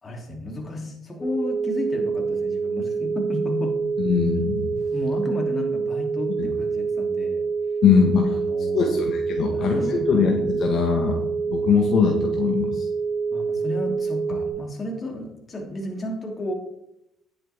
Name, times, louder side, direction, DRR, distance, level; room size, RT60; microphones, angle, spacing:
voice 1, 0.0-3.8 4.9-7.5 8.4-9.1 9.5-10.3 13.3-16.5, left 1 dB, 30° left, 1 dB, 3.1 m, -32 dB
sound 1, 1.2-14.5, right 5 dB, 15° left, 2.6 m, -26 dB
voice 2, 4.0-4.8 6.4-6.5 7.8-8.3 8.7-12.9, left 6 dB, 60° left, 2 dB, 1.5 m, -22 dB
10.5 x 8.7 x 3.6 m, 0.83 s
supercardioid pair, 80°, 0 cm